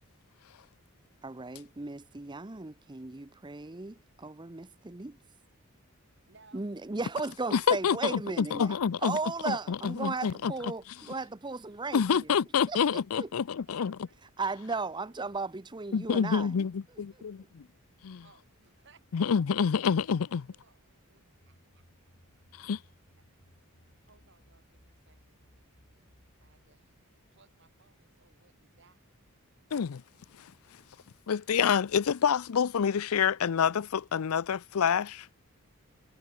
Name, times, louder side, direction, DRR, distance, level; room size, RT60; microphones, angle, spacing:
voice 1, 1.2-5.2 6.5-12.3 12.7-13.3 14.4-17.2, right 3 dB, 20° right, 0.7 m, -36 dB
voice 2, 6.3-7.0 8.7-8.8 10.2-10.4 13.7-14.2 18.2-20.0 20.5-22.1 24.0-25.4 26.4-26.9 27.3-29.1, right 4 dB, 55° right, 4.8 m, -63 dB
voice 3, 8.6-9.2 9.5-9.6 9.8-10.5 11.9-14.0 15.9-16.7 17.0-17.7 18.0-18.2 19.1-20.5 22.5-22.8 29.7-30.0 30.4-30.5 31.3-35.4, left 7 dB, 75° left, 0.5 m, -27 dB
sound 1, 21.4-26.7, equal, 55° left, 6.1 m, -63 dB
head